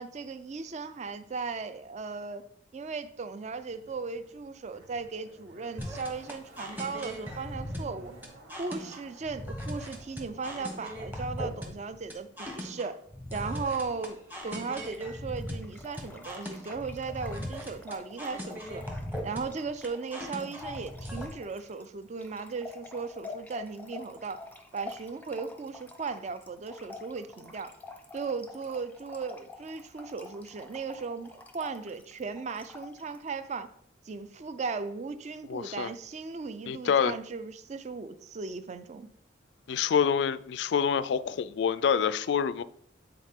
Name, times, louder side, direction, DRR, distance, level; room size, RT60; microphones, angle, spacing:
voice 1, 0.0-2.4 2.7-8.1 8.6-13.0 13.3-18.8 19.2-24.4 24.7-27.7 28.1-33.7 34.1-39.1, right 4 dB, 35° right, 0.4 m, -37 dB
Zipper (clothing), 3.5-11.2 11.4-11.5, right 2 dB, 65° right, 1.6 m, -55 dB
sound 1, 5.8-21.3, equal, 10° right, 1.0 m, -39 dB
Trickle dribble / Fill (with liquid), 14.8-33.3, left 3 dB, 10° left, 0.6 m, -48 dB
voice 2, 35.5-35.9 36.7-37.1 39.7-42.6, left 7 dB, 60° left, 0.3 m, -26 dB
9.2 x 4.1 x 3.6 m
head